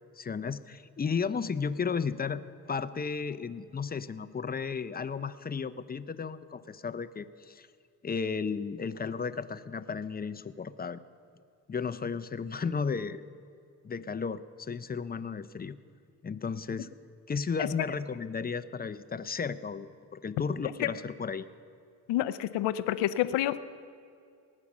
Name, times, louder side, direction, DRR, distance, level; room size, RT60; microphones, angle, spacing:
voice 1, 0.2-2.4 2.7-7.7 8.0-11.0 11.7-13.2 13.8-15.8 16.2-16.9 17.3-21.5, left 5 dB, 25° left, 13 dB, 0.6 m, -34 dB
voice 2, 22.1-23.6, left 13 dB, 85° left, 13 dB, 0.6 m, -28 dB
19.5 x 8.6 x 6.1 m, 2.3 s
cardioid pair, 80°, 41 cm